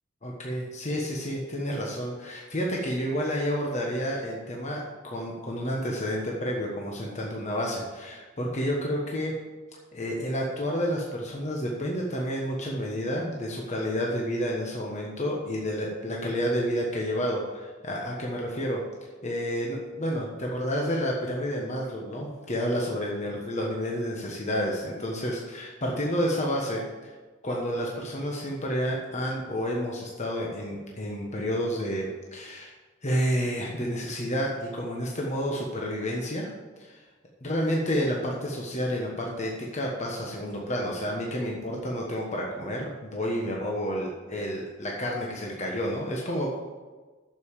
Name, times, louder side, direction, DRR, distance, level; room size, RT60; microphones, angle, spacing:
voice 1, 0.2-9.4 9.9-18.8 19.2-27.1 27.4-32.7 33.0-36.5 36.8-37.0 37.4-46.6, equal, 35° left, -2 dB, 1.3 m, -30 dB
8.0 x 7.0 x 7.3 m, 1.3 s
head